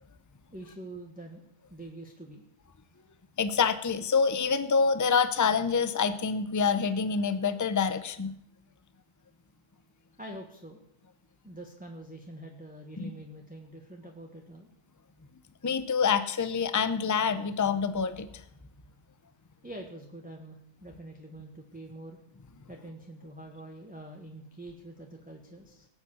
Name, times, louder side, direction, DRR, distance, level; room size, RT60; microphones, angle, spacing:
voice 1, 0.5-1.4 1.7-2.4 10.2-10.8 11.4-14.7 19.6-22.2 22.7-25.9, right 1 dB, 5° right, 1 dB, 1.2 m, -45 dB
voice 2, 3.4-8.4 13.0-13.1 15.6-18.4, left 5 dB, 25° left, 11 dB, 0.4 m, -26 dB
18.0 x 7.8 x 7.1 m, 0.76 s
omnidirectional pair, 1.6 m